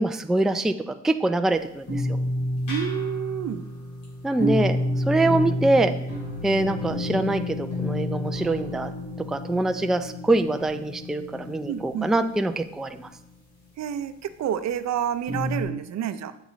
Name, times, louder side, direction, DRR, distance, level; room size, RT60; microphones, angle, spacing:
voice 1, 0.0-2.0 4.2-4.8 5.1-5.9 6.4-8.9 9.3-13.1, right 2 dB, ahead, 8 dB, 0.4 m, -24 dB
sound 1, 1.9-12.1 15.3-15.6, left 1 dB, 75° left, 3.3 m, -29 dB
voice 2, 2.7-3.6 11.7-12.1 13.8-16.3, right 9 dB, 60° right, 12 dB, 0.6 m, -29 dB
7.4 x 7.3 x 3.1 m, 0.78 s
cardioid pair, 90°, 30 cm